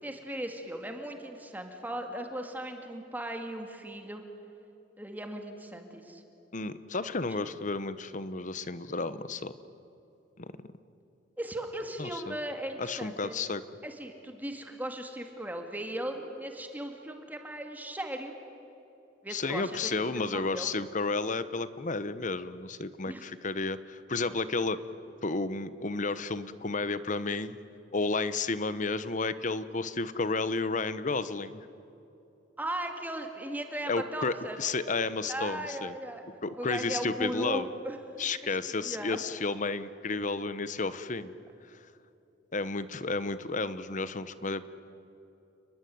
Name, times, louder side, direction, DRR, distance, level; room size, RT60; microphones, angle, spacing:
voice 1, 0.0-4.2 5.0-6.2 11.4-13.4 13.8-18.3 19.2-20.0 20.3-20.7 23.1-23.2 32.6-34.6 35.3-36.3 36.6-38.0 38.8-39.2, right 1 dB, 10° right, 4 dB, 2.3 m, -37 dB
voice 2, 6.5-9.5 10.4-10.5 12.0-12.4 12.8-13.6 19.3-24.8 25.2-27.6 27.9-31.7 33.9-35.9 36.4-37.7 38.2-41.3 41.7-41.8 42.5-44.7, left 3 dB, 40° left, 14 dB, 1.0 m, -32 dB
29.5 x 21.0 x 9.4 m, 2.9 s
head